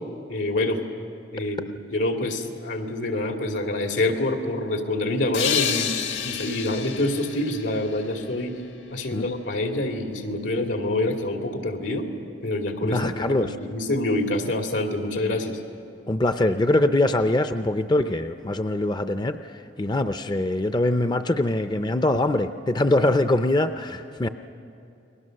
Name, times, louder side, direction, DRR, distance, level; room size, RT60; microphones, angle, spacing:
voice 1, 0.3-0.8 1.3-5.9 6.2-8.6 8.9-12.1 12.4-13.0 13.3-15.6, left 1 dB, 90° left, 3 dB, 2.6 m, -26 dB
sound 1, 5.3-8.8, left 9 dB, 70° left, 1.7 m, -30 dB
voice 2, 12.8-13.6 16.1-24.3, left 1 dB, 25° left, 9 dB, 0.5 m, -23 dB
29.5 x 21.5 x 6.5 m, 2.7 s
head